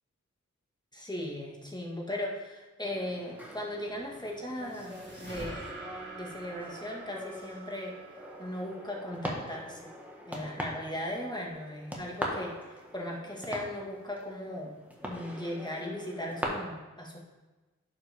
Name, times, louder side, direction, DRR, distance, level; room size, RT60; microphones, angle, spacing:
voice 1, 0.9-5.7 6.1-8.0 8.4-9.9 10.2-14.7 15.0-17.2, left 1 dB, 15° left, -2 dB, 1.7 m, -38 dB
sound 1, 2.8-16.4, equal, 5° right, 1.6 m, -42 dB
sound 2, 4.2-9.4, right 3 dB, 35° right, 2.3 m, -47 dB
11.0 x 4.6 x 3.6 m, 1.2 s
wide cardioid pair, 45°, 31 cm